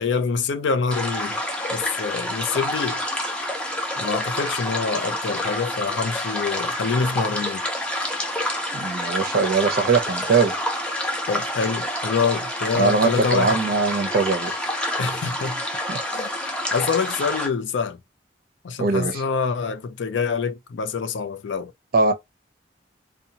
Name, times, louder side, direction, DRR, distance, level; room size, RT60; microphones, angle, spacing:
voice 1, 0.0-1.4 1.7-3.0 4.0-7.7 11.3-13.6 15.0-15.6 16.1-16.3 16.7-18.0 18.6-21.7, left 5 dB, 75° left, 0.4 m, -26 dB
sound 1, 0.9-17.5, left 1 dB, 5° left, 0.5 m, -28 dB
voice 2, 8.7-10.6 12.8-14.6 15.9-16.0 18.8-19.2 21.9-22.1, right 4 dB, 50° right, 0.5 m, -21 dB
2.7 x 2.2 x 2.7 m
head